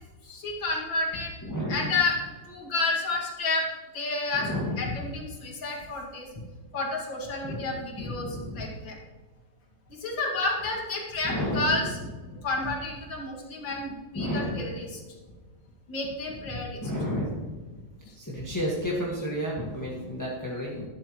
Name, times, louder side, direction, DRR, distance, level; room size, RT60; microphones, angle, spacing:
voice 1, 0.3-1.3 1.7-2.2 2.5-3.6 3.9-4.5 4.8-6.3 6.7-9.0 10.0-12.0 12.2-15.0 15.9-16.8, left 3 dB, 65° left, -1 dB, 2.9 m, -30 dB
voice 2, 1.4-2.0 4.3-5.0 7.4-7.7 8.0-8.6 11.2-12.1 14.1-14.6 16.8-17.4 18.2-20.8, equal, 10° left, -4 dB, 1.6 m, -31 dB
12.5 x 12.0 x 3.1 m, 1.3 s
omnidirectional pair, 2.2 m